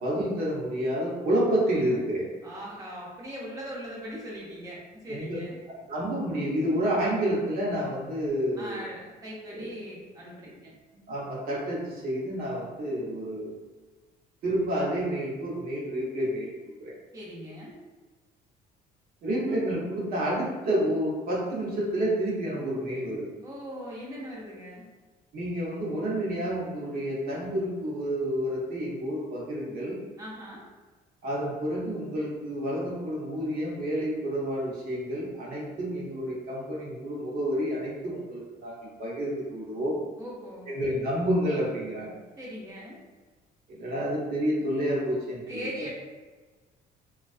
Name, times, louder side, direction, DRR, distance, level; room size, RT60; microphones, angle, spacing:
voice 1, 0.0-2.3 5.1-5.4 5.9-8.9 9.5-9.6 11.1-13.6 14.4-16.5 16.8-16.9 19.2-23.3 25.3-30.0 31.2-40.0 40.7-42.2 43.7-45.6, equal, 60° right, -5 dB, 0.9 m, -29 dB
voice 2, 2.4-5.6 8.6-10.7 17.1-17.8 23.4-24.9 30.2-30.6 40.2-40.7 42.4-43.0 45.5-45.9, equal, 20° right, -5 dB, 0.6 m, -40 dB
2.3 x 2.2 x 2.4 m, 1.3 s
cardioid pair, 110°, 17 cm